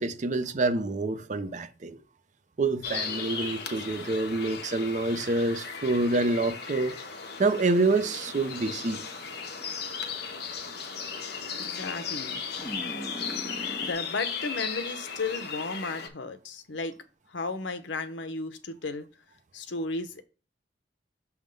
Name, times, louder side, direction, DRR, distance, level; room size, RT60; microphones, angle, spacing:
voice 1, 0.0-2.0 2.6-7.0 7.4-9.0, right 2 dB, 40° right, 0.6 m, -27 dB
sound 1, 2.8-16.1, left 6 dB, 60° left, 1.0 m, -36 dB
sound 2, 8.1-13.9, equal, 5° left, 1.6 m, -44 dB
voice 2, 11.6-12.4 13.8-16.9 17.3-19.1 19.5-20.2, left 3 dB, 80° left, 0.8 m, -34 dB
6.5 x 3.5 x 5.3 m
head